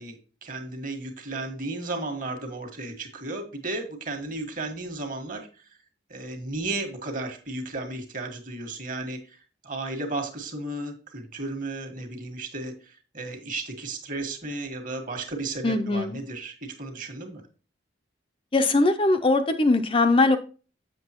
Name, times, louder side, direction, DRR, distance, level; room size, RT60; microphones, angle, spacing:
voice 1, 0.0-5.7 6.1-9.4 9.6-17.4, right 2 dB, 45° right, 5 dB, 1.5 m, -34 dB
voice 2, 15.6-16.2 18.5-20.4, left 2 dB, 30° left, 7 dB, 0.5 m, -21 dB
7.4 x 6.6 x 2.9 m, 0.36 s
head